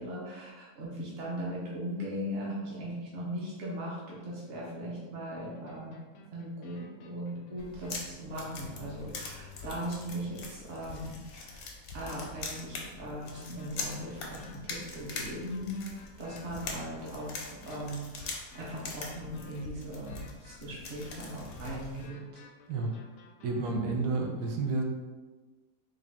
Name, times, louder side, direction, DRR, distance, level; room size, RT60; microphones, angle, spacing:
voice 1, 0.0-5.9 6.3-11.6 11.9-15.8 16.2-22.2, equal, 50° right, -6 dB, 0.9 m, -39 dB
sound 1, 5.2-10.5 12.4-23.8, left 5 dB, 70° left, 0.7 m, -55 dB
sound 2, 7.6-22.1, left 3 dB, 90° left, 1.3 m, -43 dB
voice 2, 23.4-24.8, right 3 dB, 80° right, 2 dB, 1.1 m, -30 dB
3.9 x 2.4 x 3.4 m, 1.2 s
omnidirectional pair, 1.7 m